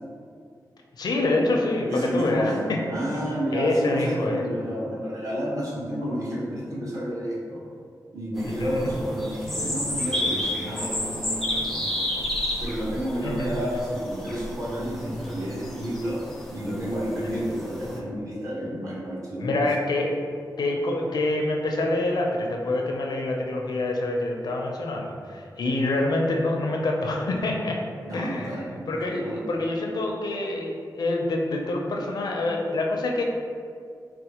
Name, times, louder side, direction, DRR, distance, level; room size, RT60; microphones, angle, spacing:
voice 1, 1.0-2.8 3.5-4.4 8.4-8.9 13.2-13.6 19.4-20.2 20.6-27.8 28.1-33.2, left 2 dB, 70° left, 0 dB, 0.4 m, -26 dB
voice 2, 1.9-2.6 2.9-7.6 8.1-12.1 12.6-16.2 16.5-19.6 28.0-28.7 29.0-29.4, equal, 50° right, -7 dB, 1.2 m, -30 dB
sound 1, 8.4-18.0, left 1 dB, 5° left, 0.5 m, -31 dB
4.0 x 2.1 x 2.9 m, 2.2 s
cardioid pair, 70°, 7 cm